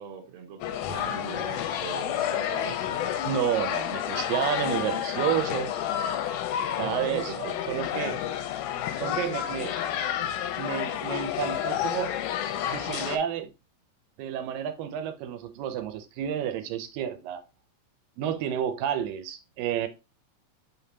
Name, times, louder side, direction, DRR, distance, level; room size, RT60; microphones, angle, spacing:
voice 1, 0.0-3.1 6.8-8.2, right 6 dB, 65° right, 1.8 m, -41 dB
sound 1, 0.6-13.2, left 10 dB, 80° left, 1.8 m, -30 dB
voice 2, 3.2-5.7 6.8-8.2 9.0-9.8 10.6-12.2 12.7-13.5 14.2-17.4 18.2-19.9, right 9 dB, 85° right, 2.3 m, -30 dB
5.3 x 3.6 x 2.8 m
omnidirectional pair, 3.9 m